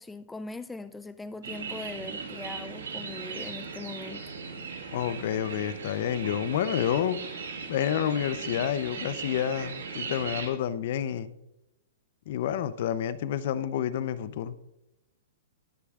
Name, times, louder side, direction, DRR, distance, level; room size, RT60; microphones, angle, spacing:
voice 1, 0.0-4.2, left 3 dB, 10° left, 12 dB, 0.3 m, -40 dB
sound 1, 1.4-10.5, right 5 dB, 85° right, 1.9 m, -38 dB
voice 2, 4.9-7.2 7.7-11.3 12.3-14.6, left 10 dB, 60° left, 15 dB, 0.6 m, -29 dB
20.0 x 6.8 x 2.4 m, 0.89 s
hypercardioid pair, 135°, 0 cm